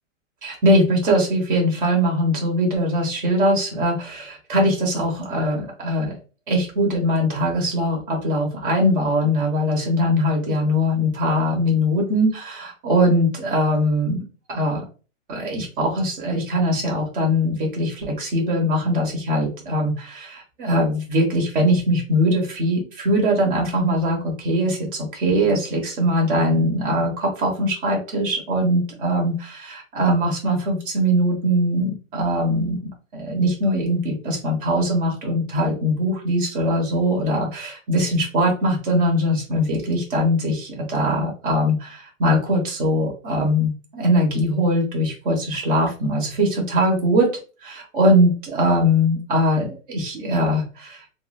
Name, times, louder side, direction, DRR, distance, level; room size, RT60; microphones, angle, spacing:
voice 1, 0.4-6.1 6.5-14.2 14.5-14.8 15.3-32.8 33.1-47.3 47.6-51.0, equal, 40° right, -1 dB, 1.3 m, -21 dB
3.6 x 2.1 x 2.4 m, 0.34 s
hypercardioid pair, 150°, 39 cm